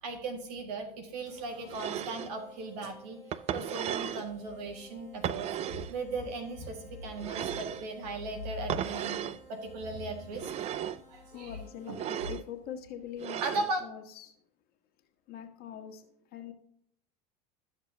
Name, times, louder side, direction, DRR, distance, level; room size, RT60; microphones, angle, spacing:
voice 1, 0.0-3.2 3.5-9.2 9.5-10.7 11.1-11.6 11.9-12.0 13.4-13.8, right 2 dB, 70° right, 5 dB, 1.7 m, -37 dB
sound 1, 1.3-12.6, right 1 dB, 90° right, 3.3 m, -56 dB
sound 2, 1.7-2.3 3.3-4.3 5.2-5.9 7.2-7.9 8.7-9.4 10.3-11.0 11.9-12.4 13.2-13.7, right 10 dB, 30° right, 0.4 m, -35 dB
voice 2, 11.3-14.3 15.3-16.5, left 9 dB, 45° left, 4 dB, 1.3 m, -43 dB
12.5 x 6.6 x 2.7 m, 0.69 s
hypercardioid pair, 95°, 21 cm